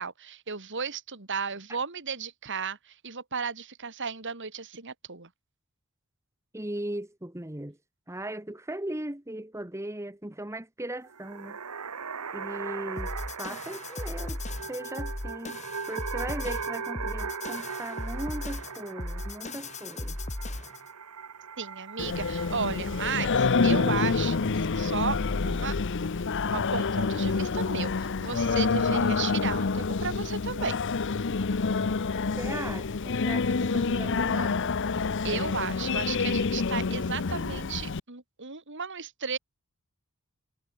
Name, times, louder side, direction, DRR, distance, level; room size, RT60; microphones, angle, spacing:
voice 1, 0.0-5.3 21.6-25.2 25.4-25.7 26.4-30.8 35.0-39.4, right 5 dB, 55° right, 3.0 m, -34 dB
voice 2, 6.5-7.8 8.1-11.6 12.3-14.4 14.7-20.2 32.4-34.7, right 1 dB, 15° right, 1.5 m, -38 dB
sound 1, 11.0-24.4, right 5 dB, 85° right, 1.5 m, -39 dB
sound 2, 13.0-20.9, left 1 dB, 30° left, 2.6 m, -37 dB
Singing, 22.0-38.0, left 4 dB, 55° left, 0.7 m, -27 dB
head